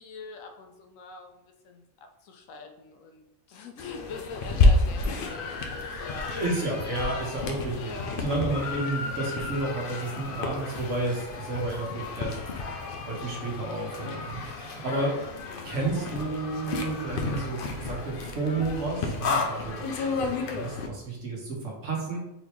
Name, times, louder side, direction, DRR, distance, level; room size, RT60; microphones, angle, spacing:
voice 1, 0.0-6.4 7.7-8.6 15.0-15.2, left 4 dB, 80° left, 4 dB, 1.0 m, -44 dB
sound 1, 3.8-20.9, left 3 dB, 60° left, 0.6 m, -30 dB
voice 2, 6.3-12.4 13.1-15.2 15.6-22.2, right 2 dB, 65° right, -2 dB, 1.4 m, -31 dB
4.0 x 3.3 x 3.0 m, 0.89 s
omnidirectional pair, 1.4 m